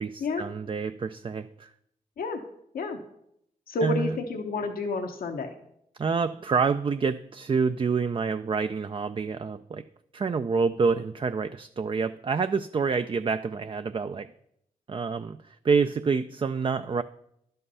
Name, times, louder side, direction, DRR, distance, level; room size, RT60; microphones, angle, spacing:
voice 1, 0.0-1.7 3.8-4.2 6.0-9.8 10.1-14.3 14.9-17.0, right 5 dB, 35° right, 10 dB, 0.4 m, -27 dB
voice 2, 3.7-5.5, left 3 dB, 80° left, 5 dB, 0.8 m, -30 dB
11.0 x 5.6 x 5.5 m, 0.75 s
cardioid pair, 60°, 15 cm